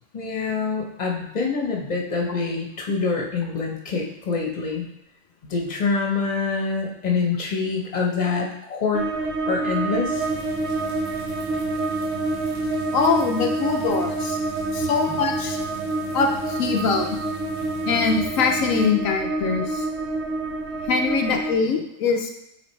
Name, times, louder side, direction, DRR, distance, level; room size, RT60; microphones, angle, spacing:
voice 1, 0.1-4.9 5.4-9.1 9.5-10.2, left 4 dB, 35° left, 0 dB, 1.1 m, -25 dB
sound 1, 8.9-21.5, right 2 dB, 60° right, 1.0 m, -27 dB
sound 2, 10.1-18.9, right 2 dB, 30° right, 2.2 m, -40 dB
voice 2, 12.9-14.4 14.7-15.6 16.1-17.2 17.9-19.9 20.8-22.3, left 4 dB, 80° left, 3 dB, 1.1 m, -23 dB
8.7 x 3.9 x 3.2 m, 0.76 s
omnidirectional pair, 1.4 m